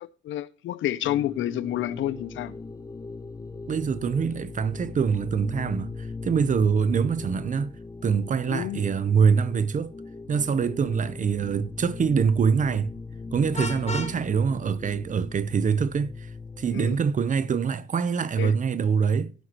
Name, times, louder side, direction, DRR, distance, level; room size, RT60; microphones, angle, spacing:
voice 1, 0.0-2.5 8.5-8.8 16.7-17.0 18.4-18.5, left 13 dB, 75° left, 0.7 m, -29 dB
sound 1, 1.0-17.0, left 3 dB, 15° left, 0.8 m, -39 dB
voice 2, 3.7-7.7 8.0-9.9 10.3-12.9 13.3-16.3 16.6-19.3, right 6 dB, 40° right, 0.8 m, -24 dB
Vehicle horn car horn honking, 13.5-14.2, left 3 dB, 35° left, 1.9 m, -32 dB
16.5 x 5.8 x 3.0 m
cardioid pair, 90°, 20 cm